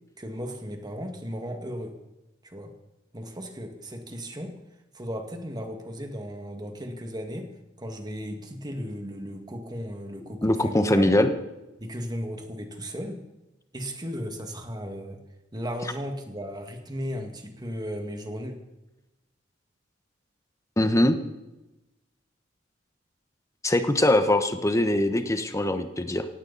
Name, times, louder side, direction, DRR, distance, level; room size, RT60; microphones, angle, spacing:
voice 1, 0.2-1.9 2.4-2.7 3.1-4.5 4.9-7.5 7.8-11.2 11.8-13.2 13.7-15.2 15.5-18.6, equal, 20° right, 5 dB, 2.0 m, -35 dB
voice 2, 10.4-11.3 20.8-21.2 23.6-26.3, left 1 dB, 15° left, 8 dB, 1.2 m, -22 dB
17.0 x 17.0 x 4.2 m, 1.0 s
head